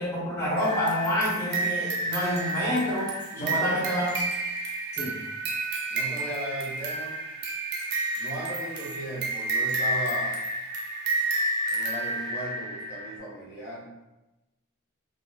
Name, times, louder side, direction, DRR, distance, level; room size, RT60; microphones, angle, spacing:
voice 1, 0.0-3.1 3.4-4.1 4.9-5.1, equal, 15° left, -8 dB, 0.6 m, -28 dB
sound 1, 0.6-13.2, right 2 dB, 50° right, 0.4 m, -30 dB
voice 2, 3.3-3.8 5.9-7.1 8.2-10.4 11.7-13.9, right 1 dB, 55° left, -5 dB, 0.9 m, -36 dB
2.3 x 2.2 x 3.1 m, 1.0 s
head